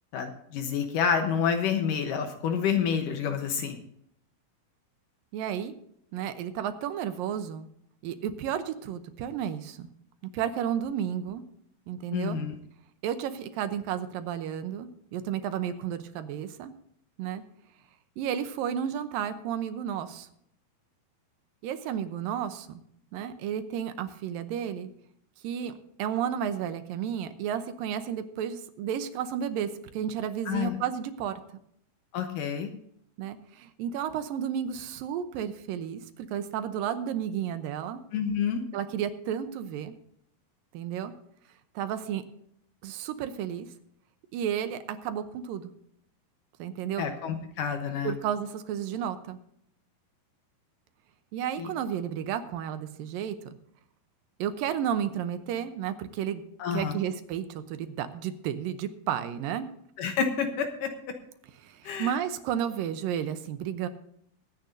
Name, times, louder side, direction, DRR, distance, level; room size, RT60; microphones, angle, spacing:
voice 1, 0.1-3.8 12.1-12.6 30.5-30.7 32.1-32.7 38.1-38.6 47.0-48.1 51.6-51.7 56.6-57.0 60.0-60.9 61.9-62.1, left 7 dB, 70° left, 6 dB, 2.4 m, -28 dB
voice 2, 5.3-5.8 6.1-7.7 8.0-9.9 10.3-11.4 11.9-12.4 13.0-16.7 17.2-17.4 18.2-20.3 21.6-22.8 23.1-24.9 25.4-25.7 26.0-31.3 33.2-38.0 38.7-39.9 40.7-41.1 41.8-42.2 42.8-43.7 44.3-45.7 46.6-47.0 48.0-49.4 51.3-53.4 54.4-56.4 56.7-59.7 61.6-63.9, right 9 dB, 75° right, 10 dB, 2.4 m, -32 dB
22.5 x 9.5 x 2.7 m, 0.70 s
omnidirectional pair, 4.3 m